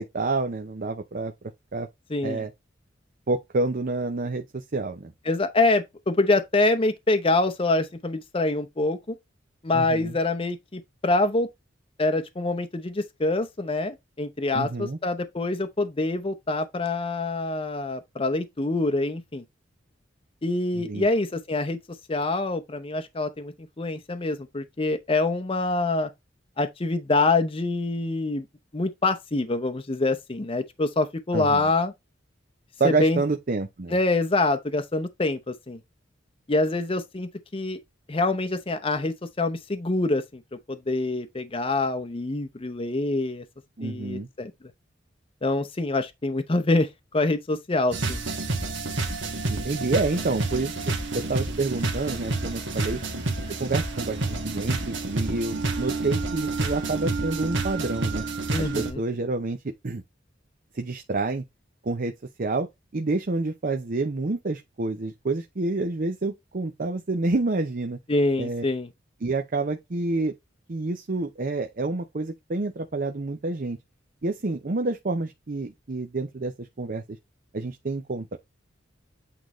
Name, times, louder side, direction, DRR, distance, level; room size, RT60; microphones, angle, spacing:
voice 1, 0.0-1.3 1.7-1.9 2.2-2.5 3.3-5.1 9.7-10.2 14.5-15.0 20.8-21.1 31.3-31.7 32.8-34.0 43.8-44.3 49.5-50.7 51.1-53.0 53.6-58.2 58.6-59.6 59.8-60.0 60.7-61.4 61.8-62.1 62.4-62.7 62.9-68.0 68.4-68.6 69.2-70.3 70.7-73.8 74.2-77.0 77.5-78.4, right 3 dB, 45° right, 0.7 m, -28 dB
voice 2, 2.1-2.5 5.3-9.1 9.6-11.5 12.0-19.4 20.4-21.8 22.1-26.1 26.6-28.4 28.7-31.9 32.8-33.2 33.9-35.8 36.5-37.8 38.1-40.4 40.7-43.4 43.8-44.5 45.4-46.9 47.1-48.2 58.5-59.0 68.1-68.9, left 2 dB, 30° left, 0.7 m, -25 dB
sound 1, 47.9-58.9, right 3 dB, 70° right, 1.6 m, -29 dB
8.5 x 3.9 x 3.1 m
head